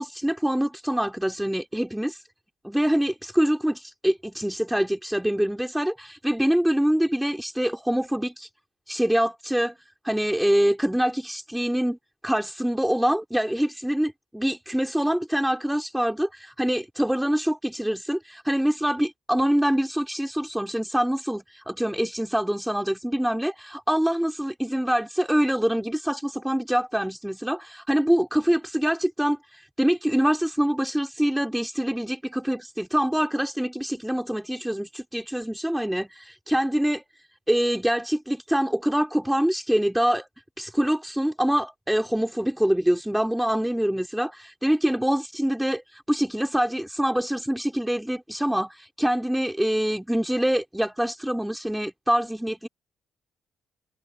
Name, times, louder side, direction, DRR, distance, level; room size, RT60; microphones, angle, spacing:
voice 1, 0.0-2.2 2.6-8.5 8.9-9.7 10.0-12.0 12.2-37.0 37.5-40.3 40.6-52.7, equal, 5° right, 3.5 m, -25 dB
cardioid pair, 90°, 0 cm